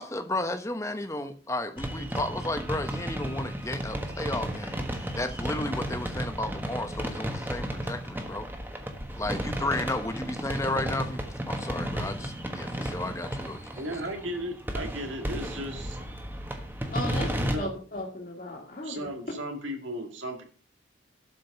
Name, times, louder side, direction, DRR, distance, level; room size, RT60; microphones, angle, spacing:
voice 1, 0.0-8.5 9.2-11.2 11.5-14.0, left 2 dB, 15° left, 0.9 m, -33 dB
sound 1, 1.8-17.6, equal, 10° right, 1.3 m, -33 dB
voice 2, 13.7-16.0 17.5-17.7 18.8-20.4, equal, 90° right, 2.4 m, -35 dB
voice 3, 16.9-19.1, left 1 dB, 45° left, 2.0 m, -36 dB
12.0 x 5.2 x 6.8 m
head